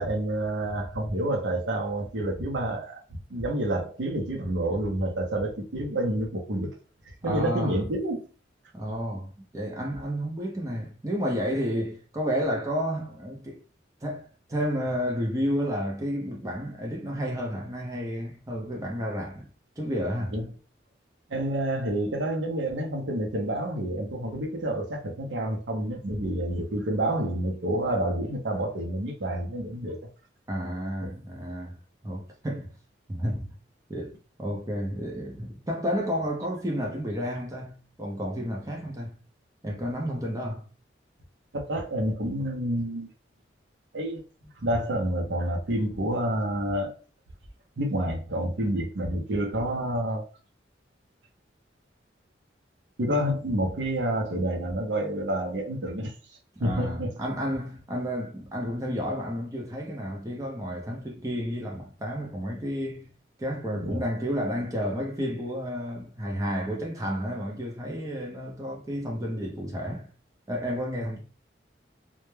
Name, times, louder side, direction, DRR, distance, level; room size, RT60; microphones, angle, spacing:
voice 1, 0.0-6.7 7.1-8.3 20.3-20.5 21.3-30.0 31.0-31.1 41.5-43.1 43.9-44.2 44.6-46.9 47.8-50.2 53.0-56.1 56.6-57.2 63.8-64.0, right 1 dB, 75° right, 0.6 m, -28 dB
voice 2, 7.2-7.8 8.7-13.6 14.0-19.5 19.8-20.4 30.5-31.8 32.0-32.7 33.1-33.5 33.9-39.1 39.6-40.6 56.6-63.1 63.4-70.1 70.5-71.2, equal, 15° right, 0.5 m, -31 dB
2.2 x 2.0 x 3.1 m
head